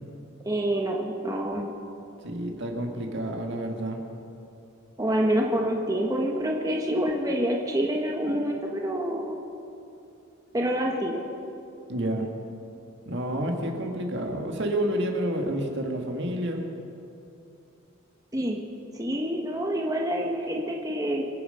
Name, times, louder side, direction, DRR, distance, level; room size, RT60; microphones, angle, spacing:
voice 1, 0.4-1.7 5.0-9.4 10.5-11.2 18.3-18.6 18.9-21.2, right 1 dB, 15° right, 0 dB, 1.1 m, -27 dB
voice 2, 2.2-4.0 11.9-12.3 13.1-16.6, right 1 dB, 55° right, 3 dB, 1.8 m, -29 dB
26.0 x 8.9 x 5.6 m, 2.8 s
head